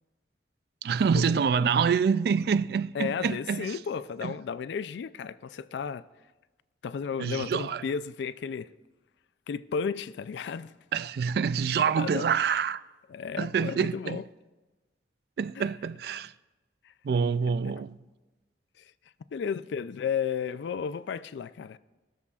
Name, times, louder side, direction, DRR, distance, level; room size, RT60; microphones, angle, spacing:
voice 1, 0.8-3.8 4.2-4.3 7.2-7.8 10.9-12.8 13.4-14.2 15.4-16.3 17.0-18.0, right 6 dB, 60° right, 0.3 m, -26 dB
voice 2, 2.9-6.1 6.8-8.7 9.5-10.7 12.0-12.3 13.1-14.2 15.6-15.7 16.8-16.9 17.5-17.7 18.8-18.9 19.3-21.8, left 6 dB, 75° left, 0.3 m, -33 dB
20.5 x 7.0 x 2.4 m
head